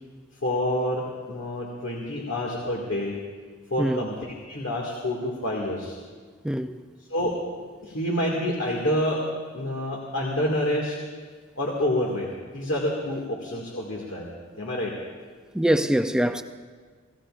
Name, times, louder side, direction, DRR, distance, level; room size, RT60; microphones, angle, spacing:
voice 1, 0.4-1.0 1.3-3.1 3.7-4.2 4.5-6.0 7.1-7.3 7.8-9.2 9.5-11.0 11.6-12.3 12.5-14.3 14.6-15.0, left 1 dB, 80° left, 2.1 m, -27 dB
voice 2, 6.4-6.8 15.5-16.4, right 1 dB, 5° right, 0.5 m, -23 dB
27.5 x 16.5 x 2.5 m
head